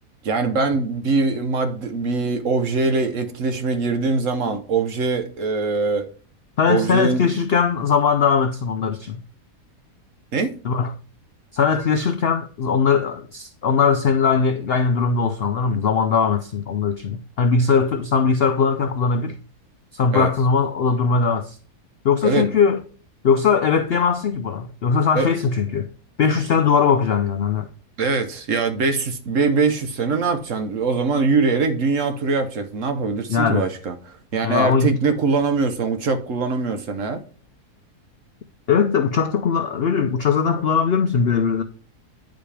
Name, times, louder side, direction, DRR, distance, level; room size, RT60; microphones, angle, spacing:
voice 1, 0.2-6.1 6.7-7.2 10.3-10.5 20.1-20.3 22.2-22.5 25.1-25.3 28.0-37.2, right 4 dB, 55° right, 1.1 m, -22 dB
voice 2, 6.6-9.2 10.6-10.9 11.5-19.4 19.9-21.6 22.0-22.8 23.2-25.9 26.2-27.7 33.3-33.6 34.4-34.9 38.7-41.6, left 6 dB, 75° left, 0.5 m, -20 dB
9.3 x 5.2 x 3.3 m
omnidirectional pair, 1.7 m